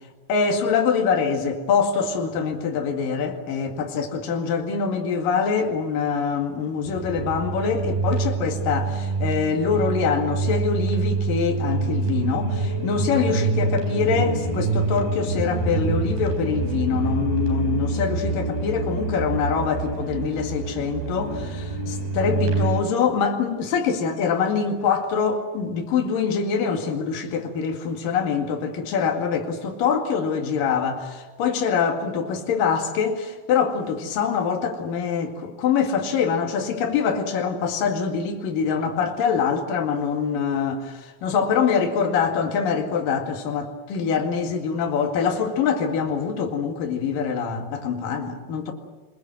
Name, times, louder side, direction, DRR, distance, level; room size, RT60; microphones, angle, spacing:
voice 1, 0.3-48.7, left 6 dB, 70° left, 3.8 m, -24 dB
sound 1, 6.9-22.8, right 3 dB, 90° right, 5.8 m, -26 dB
25.0 x 22.5 x 7.7 m
omnidirectional pair, 4.2 m